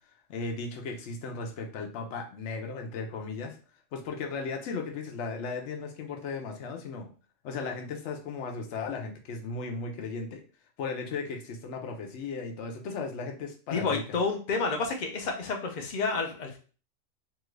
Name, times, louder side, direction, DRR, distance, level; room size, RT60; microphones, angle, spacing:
voice 1, 0.3-3.6 3.9-7.1 7.4-10.4 10.8-14.0, left 4 dB, 65° left, 2 dB, 0.9 m, -36 dB
voice 2, 13.7-16.6, left 4 dB, 50° left, 3 dB, 0.6 m, -30 dB
2.9 x 2.4 x 3.1 m, 0.37 s
omnidirectional pair, 1.3 m